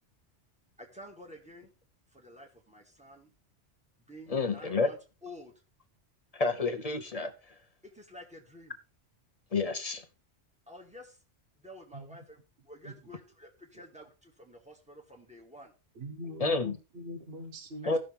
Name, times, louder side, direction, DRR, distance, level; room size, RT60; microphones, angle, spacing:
voice 1, 0.8-1.7 2.1-3.3 4.1-5.5 7.8-8.7 10.7-11.2 11.6-15.7 17.8-18.0, left 1 dB, 5° right, 1.9 m, -50 dB
voice 2, 4.3-4.9 6.3-7.5 9.5-10.0 16.4-16.8 17.9-18.0, left 3 dB, 40° left, 0.7 m, -29 dB
voice 3, 15.9-18.0, left 1 dB, 60° right, 1.2 m, -42 dB
16.0 x 6.2 x 3.4 m
omnidirectional pair, 1.2 m